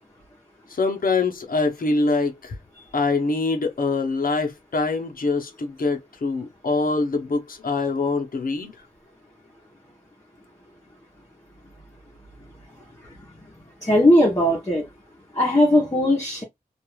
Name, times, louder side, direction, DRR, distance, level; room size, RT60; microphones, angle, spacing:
voice 1, 0.7-2.6 2.9-8.7, left 3 dB, 70° left, 0.7 m, -24 dB
voice 2, 13.8-14.9 15.3-16.4, left 1 dB, 20° left, 0.8 m, -18 dB
2.4 x 2.3 x 3.0 m
wide cardioid pair, 90°, 15 cm